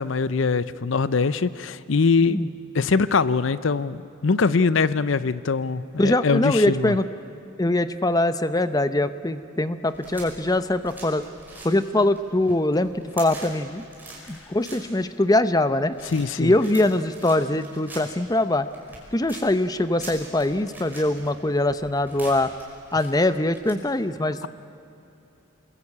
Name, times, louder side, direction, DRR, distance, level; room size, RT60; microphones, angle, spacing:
voice 1, 0.0-2.4 2.7-7.0 16.0-16.5 24.4-24.5, left 4 dB, 70° left, 16 dB, 0.6 m, -22 dB
voice 2, 6.0-7.1 7.6-11.2 11.6-13.8 14.3-16.0 16.4-18.7 19.1-22.5 22.9-24.5, left 1 dB, 20° left, 12 dB, 0.7 m, -22 dB
sound 1, 9.9-23.7, right 2 dB, 10° right, 5.5 m, -45 dB
27.5 x 21.0 x 8.6 m, 2.8 s
head